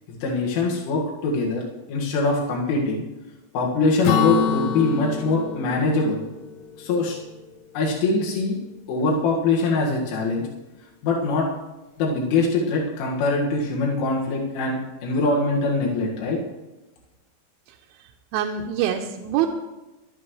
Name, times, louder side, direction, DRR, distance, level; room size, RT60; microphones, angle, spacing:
voice 1, 0.1-1.6 1.9-3.0 3.5-6.2 6.8-7.2 7.7-8.6 8.9-10.5 11.0-11.5 12.0-16.4, left 3 dB, 90° left, -3 dB, 4.4 m, -23 dB
Acoustic guitar / Strum, 4.0-7.7, left 6 dB, 70° left, 3.0 m, -27 dB
voice 2, 18.0-19.5, right 10 dB, 85° right, 1 dB, 3.3 m, -25 dB
21.0 x 13.0 x 3.2 m, 1.1 s
omnidirectional pair, 5.5 m